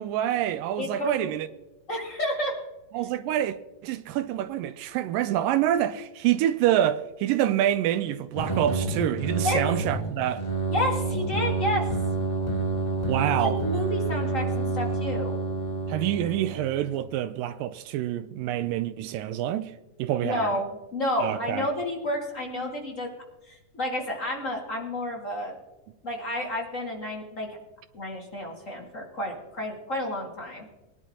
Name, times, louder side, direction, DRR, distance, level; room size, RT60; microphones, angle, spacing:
voice 1, 0.0-1.5 2.9-3.6 3.8-10.4 13.1-13.6 15.9-19.7 20.0-20.6 21.2-21.7, right 12 dB, 80° right, 2.2 m, -26 dB
voice 2, 0.8-1.3 1.9-2.5 9.4-9.8 10.7-11.9 13.4-15.4 20.2-23.1 23.5-25.6 26.0-27.6 27.9-30.7, left 1 dB, 30° left, 1.7 m, -30 dB
sound 1, 8.3-16.9, right 3 dB, 10° left, 1.6 m, -28 dB
21.0 x 11.0 x 2.8 m
omnidirectional pair, 4.0 m